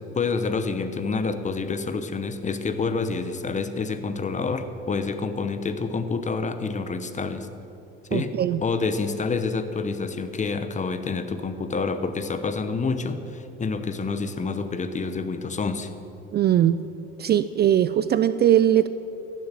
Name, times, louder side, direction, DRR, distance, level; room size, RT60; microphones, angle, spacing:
voice 1, 0.1-7.5 8.1-8.3 8.6-15.9, left 4 dB, 25° left, 10 dB, 1.0 m, -28 dB
voice 2, 8.1-8.6 16.3-16.8 17.2-18.9, right 11 dB, 35° right, 13 dB, 0.4 m, -20 dB
15.5 x 7.4 x 7.5 m, 2.9 s
supercardioid pair, 95°, 30 cm